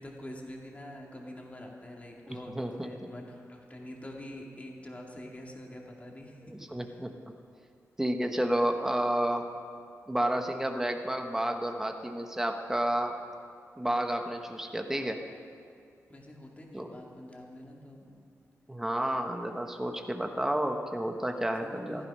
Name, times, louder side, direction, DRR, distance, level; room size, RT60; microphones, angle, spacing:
voice 1, 0.0-7.0 16.1-18.1 21.3-22.1, left 1 dB, 25° left, -1 dB, 2.3 m, -45 dB
voice 2, 2.5-2.9 6.7-7.1 8.0-9.5 10.1-13.1 13.8-15.2 16.7-16.9 18.7-22.0, right 1 dB, 10° right, 4 dB, 1.2 m, -30 dB
14.5 x 13.5 x 5.5 m, 2.4 s
wide cardioid pair, 105°, 6 cm